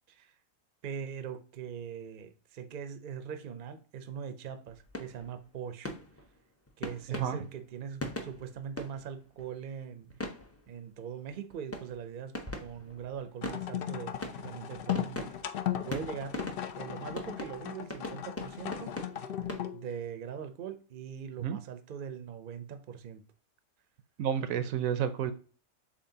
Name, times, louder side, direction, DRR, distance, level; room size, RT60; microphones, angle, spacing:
voice 1, 0.8-5.9 6.8-10.1 10.7-15.5 15.9-16.4 16.8-18.9 19.7-23.2, right 7 dB, 50° right, 9 dB, 0.6 m, -41 dB
sound 1, 4.7-5.6 5.8-9.7 10.1-10.9 11.3-19.6, left 1 dB, 20° left, 0.4 m, -42 dB
voice 2, 7.1-7.4 21.4-21.6 24.2-25.3, right 9 dB, 75° right, 12 dB, 1.0 m, -30 dB
sound 2, 13.4-19.9, left 11 dB, 70° left, 0.5 m, -37 dB
7.1 x 2.6 x 2.7 m, 0.40 s
omnidirectional pair, 1.5 m